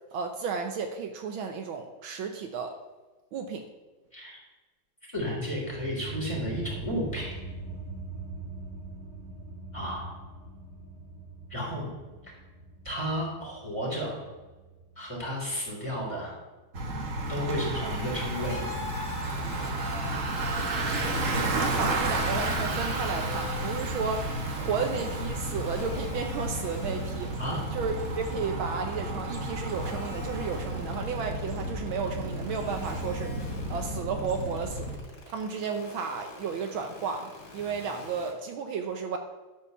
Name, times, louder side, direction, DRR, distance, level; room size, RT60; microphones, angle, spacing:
voice 1, 0.1-2.8 3.3-3.7 21.3-27.3 27.7-33.4 33.7-34.9 35.3-39.2, right 5 dB, 75° right, 5 dB, 1.6 m, -33 dB
voice 2, 5.1-7.4 9.7-10.1 11.5-11.9 12.2-12.3 12.8-14.2 15.0-16.3 17.3-18.6 27.4-27.6, equal, 15° left, -4 dB, 3.6 m, -33 dB
sound 1, 5.2-16.2, right 3 dB, 30° right, 1.9 m, -42 dB
Bicycle, 16.7-35.0, right 1 dB, 45° right, 1.3 m, -32 dB
sound 2, 18.4-21.1 21.4-22.0 22.3-23.8 24.1-28.4 28.9-38.3, left 2 dB, 70° left, 3.4 m, -44 dB
12.0 x 5.0 x 6.9 m, 1.2 s
omnidirectional pair, 2.4 m